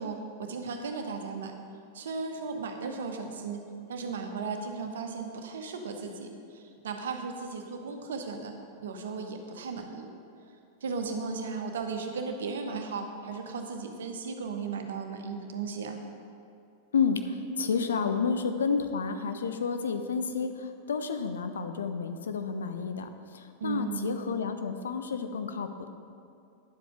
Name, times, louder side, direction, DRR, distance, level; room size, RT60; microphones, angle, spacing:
voice 1, 0.0-1.5 1.9-3.6 3.9-8.5 8.8-10.1 10.8-16.0 23.6-24.2, right 4 dB, 60° right, 5 dB, 1.0 m, -36 dB
voice 2, 16.9-25.9, left 5 dB, 65° left, 8 dB, 0.6 m, -30 dB
10.5 x 7.7 x 4.9 m, 2.5 s
figure-of-eight pair, 90°, 0 cm